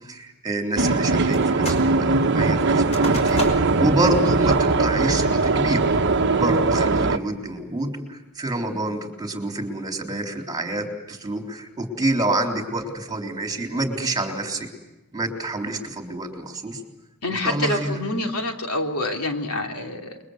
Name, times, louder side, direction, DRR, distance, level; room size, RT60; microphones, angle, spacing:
voice 1, 0.0-5.9 6.3-14.7 15.1-16.8 17.3-17.9, right 1 dB, 20° right, 3 dB, 3.8 m, -27 dB
sound 1, 0.8-7.2, right 3 dB, 55° right, 1.0 m, -20 dB
sound 2, 1.3-1.9 2.2-3.9 4.3-4.4 4.9-5.3 5.8-6.2, left 1 dB, 30° left, 5.5 m, -34 dB
voice 2, 17.2-20.2, left 2 dB, 80° left, 3 dB, 3.3 m, -27 dB
29.0 x 22.5 x 8.1 m, 1.0 s
head